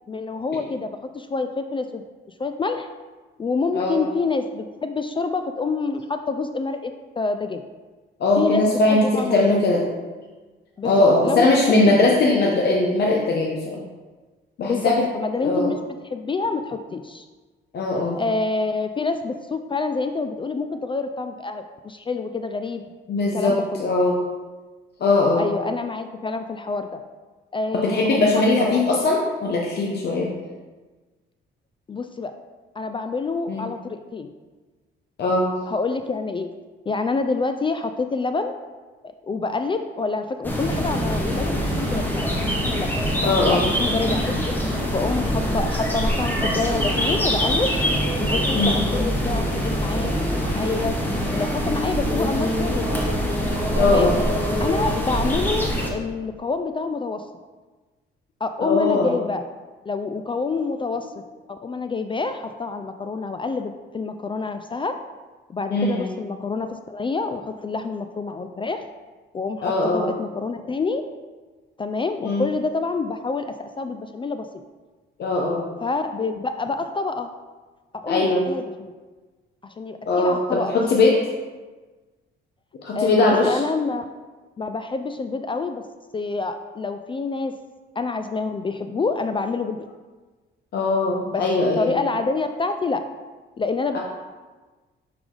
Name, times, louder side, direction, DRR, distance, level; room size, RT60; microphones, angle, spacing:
voice 1, 0.1-2.0 2.4-2.9 3.4-7.6 8.4-9.4 10.8-11.9 14.7-15.8 16.1-17.3 18.2-22.8 23.3-23.8 25.4-27.0 27.5-28.3 28.6-28.8 31.9-32.3 32.8-34.3 35.7-36.5 36.9-38.5 39.0-42.4 42.6-42.9 43.5-44.5 44.9-47.7 48.2-51.0 51.3-53.0 53.8-54.2 54.6-57.2 58.4-59.4 59.9-61.1 61.5-65.0 65.5-68.9 69.3-71.0 71.8-74.5 75.8-77.3 77.9-78.9 79.6-80.8 82.9-84.1 84.6-85.8 86.1-87.5 88.0-89.8 91.2-91.4 91.8-93.0 93.6-94.0, left 4 dB, 25° left, 8 dB, 0.3 m, -27 dB
voice 2, 8.2-9.0 9.3-9.9 10.8-13.8 14.6-15.0 15.4-15.7 17.7-18.2 23.1-24.2 25.0-25.5 27.7-30.3 33.5-33.6 35.2-35.6 43.2-43.6 48.5-48.8 53.8-54.2 58.6-59.2 65.7-66.1 69.6-70.1 72.2-72.5 75.2-75.6 78.1-78.4 80.1-81.2 82.8-83.6 90.7-91.9 93.9-94.0, left 2 dB, 55° left, -2 dB, 0.9 m, -20 dB
sound 1, 40.4-55.9, equal, 10° left, 1.1 m, -24 dB
6.0 x 4.8 x 3.8 m, 1.3 s
cardioid pair, 90°, 20 cm